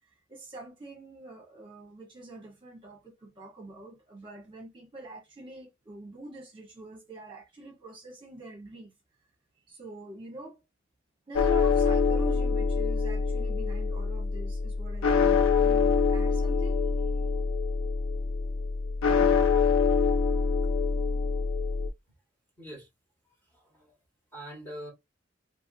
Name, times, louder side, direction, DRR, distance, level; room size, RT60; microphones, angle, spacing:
voice 1, 0.1-8.9 9.7-10.6 11.3-16.8, right 1 dB, 25° right, 1.0 m, -44 dB
sound 1, 11.3-21.9, left 5 dB, 85° left, 0.4 m, -25 dB
voice 2, 22.6-22.9 23.4-24.0 24.3-24.9, equal, 10° left, 1.4 m, -43 dB
2.8 x 2.6 x 2.6 m
head